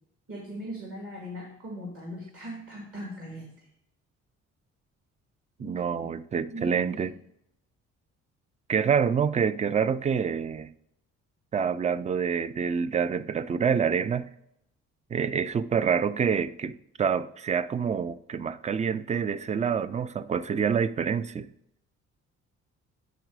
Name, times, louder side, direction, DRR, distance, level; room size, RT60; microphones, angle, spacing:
voice 1, 0.3-3.5 5.6-5.8 6.5-7.0, equal, 45° right, 2.3 m, -39 dB
voice 2, 5.6-7.1 8.7-10.7 11.5-14.3 15.1-21.5, right 7 dB, 25° right, 0.3 m, -27 dB
9.0 x 4.0 x 4.7 m
cardioid pair, 90°, 30 cm